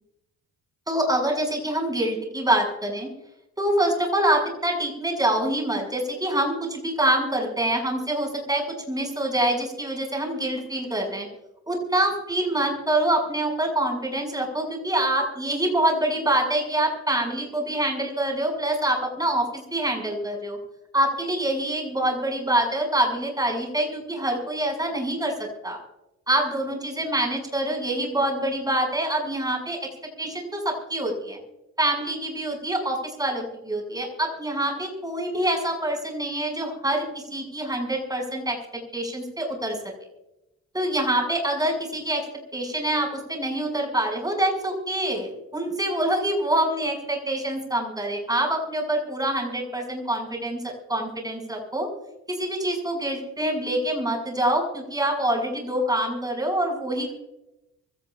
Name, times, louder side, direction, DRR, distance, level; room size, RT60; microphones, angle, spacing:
voice 1, 0.9-3.1 3.6-11.3 11.7-20.6 20.9-25.8 26.3-29.8 30.2-31.4 31.8-38.6 38.9-39.8 40.7-42.2 42.5-51.9 52.3-57.1, right 1 dB, 10° right, 0 dB, 6.6 m, -25 dB
24.5 x 17.5 x 2.6 m, 0.95 s
cardioid pair, 90°, 30 cm